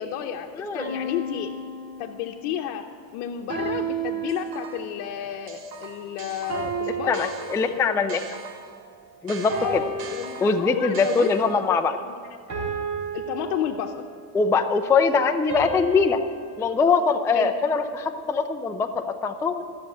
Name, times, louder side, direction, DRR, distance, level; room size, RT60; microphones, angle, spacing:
voice 1, 0.0-0.5 0.7-1.5 2.0-2.9 3.1-7.3 7.7-7.8 8.1-8.2 9.6-11.3 11.7-12.2 13.1-13.9 17.3-17.5, left 10 dB, 85° left, 2 dB, 0.9 m, -31 dB
voice 2, 0.5-1.0 7.1-8.2 9.2-9.8 10.4-12.0 14.3-16.2 16.6-19.6, left 4 dB, 5° left, 7 dB, 0.3 m, -22 dB
sound 1, 0.8-2.4 3.5-5.0 6.5-8.2 9.5-11.0 12.5-14.2 15.5-16.5, right 3 dB, 35° right, 3.9 m, -33 dB
sound 2, 4.3-5.0 5.5-8.8 9.3-11.7, right 5 dB, 65° right, 2.3 m, -42 dB
14.0 x 7.2 x 9.2 m, 2.2 s
cardioid pair, 130°, 47 cm